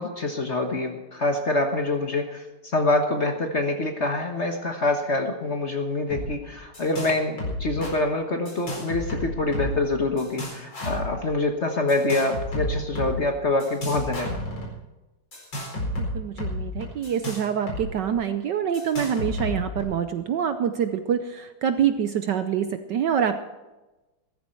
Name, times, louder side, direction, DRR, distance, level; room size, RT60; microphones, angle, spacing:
voice 1, 0.0-2.4 2.7-14.4, left 2 dB, 40° left, 4 dB, 1.3 m, -25 dB
sound 1, 6.1-6.3 6.5-7.1 7.4-7.9 8.5-9.9 10.2-11.1 11.9-13.1 13.6-14.7 15.3-17.8 18.1-18.2 18.7-19.8, left 1 dB, 60° left, 5.2 m, -31 dB
voice 2, 15.9-23.4, right 8 dB, 65° right, 9 dB, 1.1 m, -26 dB
16.0 x 14.0 x 4.5 m, 1.1 s
omnidirectional pair, 2.4 m